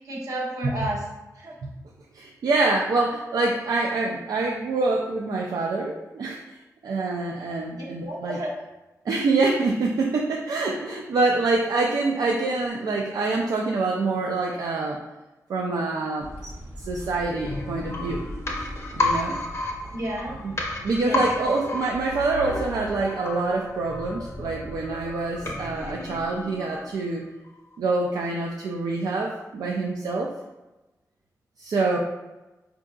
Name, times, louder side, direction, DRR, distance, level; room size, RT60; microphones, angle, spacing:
voice 1, 0.0-1.0 1.4-1.5 7.7-8.5 19.9-20.3 21.0-21.2, right 1 dB, 65° right, -4 dB, 0.9 m, -31 dB
voice 2, 2.1-6.6 6.8-8.4 9.0-15.0 15.5-16.5 16.8-18.2 18.9-19.4 20.4-20.5 20.8-27.3 27.8-30.3 31.6-32.0, right 3 dB, 80° right, -1 dB, 0.4 m, -26 dB
sound 1, 16.2-23.6, equal, 35° right, 0.7 m, -42 dB
sound 2, 17.5-27.2 27.5-27.6, left 2 dB, 45° left, 0.6 m, -32 dB
4.5 x 2.6 x 2.3 m, 1.1 s
wide cardioid pair, 160°, 7 cm